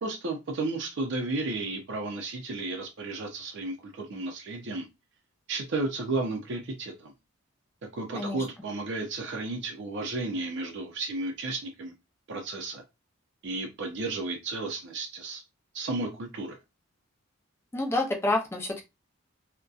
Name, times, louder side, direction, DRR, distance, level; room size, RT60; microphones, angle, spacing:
voice 1, 0.0-4.9 5.5-7.1 7.9-11.9 12.3-12.8 13.4-15.4 15.7-16.6, right 3 dB, 55° right, 0.5 m, -33 dB
voice 2, 17.7-18.8, left 2 dB, 10° left, 0.5 m, -28 dB
2.6 x 2.1 x 2.3 m
head